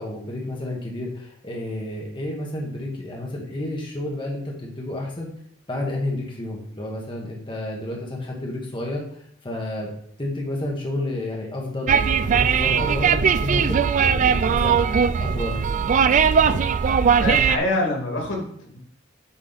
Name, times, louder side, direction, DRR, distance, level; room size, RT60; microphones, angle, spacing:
voice 1, 0.0-5.3 5.7-9.9 10.2-14.8 15.2-15.6, left 1 dB, 25° left, -2 dB, 1.4 m, -30 dB
sound 1, 11.9-17.6, right 6 dB, 40° right, 0.3 m, -19 dB
voice 2, 12.6-13.1 17.2-18.8, left 1 dB, 90° left, 0 dB, 2.3 m, -26 dB
8.2 x 4.7 x 4.1 m, 0.63 s
head